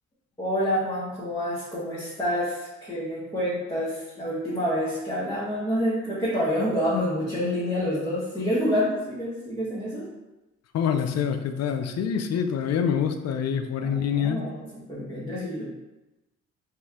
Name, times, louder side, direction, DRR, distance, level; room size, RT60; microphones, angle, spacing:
voice 1, 0.4-10.0 13.8-15.7, equal, 10° left, -10 dB, 1.3 m, -28 dB
voice 2, 10.7-14.4, left 7 dB, 60° left, 7 dB, 0.5 m, -26 dB
4.2 x 2.6 x 3.6 m, 1.0 s
cardioid pair, 90°, 30 cm